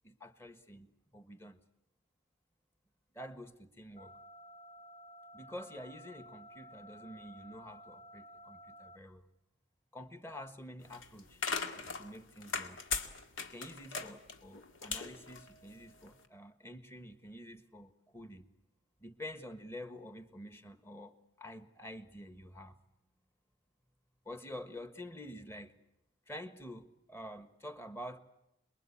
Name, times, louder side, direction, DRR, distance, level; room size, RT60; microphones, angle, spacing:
voice 1, 0.0-1.6 3.1-4.2 5.3-9.2 9.9-11.4 11.7-12.8 13.5-18.5 19.0-22.8 24.2-25.8 26.3-28.2, left 1 dB, 15° left, 10 dB, 1.4 m, -48 dB
sound 1, 4.0-9.0, equal, 35° left, 1.4 m, -54 dB
sound 2, 10.8-16.1, left 5 dB, 85° left, 2.1 m, -39 dB
28.0 x 21.5 x 8.6 m, 0.85 s
head